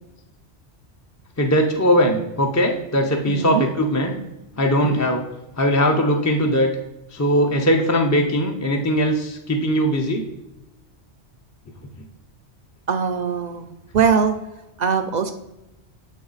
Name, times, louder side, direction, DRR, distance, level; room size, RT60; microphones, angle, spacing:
voice 1, 1.4-4.2 4.6-5.2 5.6-6.7 7.1-10.2, equal, 25° left, 2 dB, 0.4 m, -20 dB
voice 2, 3.3-3.7 4.7-5.0 12.9-13.7 13.9-14.4 14.8-15.3, right 6 dB, 60° right, 7 dB, 0.5 m, -21 dB
8.2 x 3.1 x 3.9 m, 0.95 s
omnidirectional pair, 1.1 m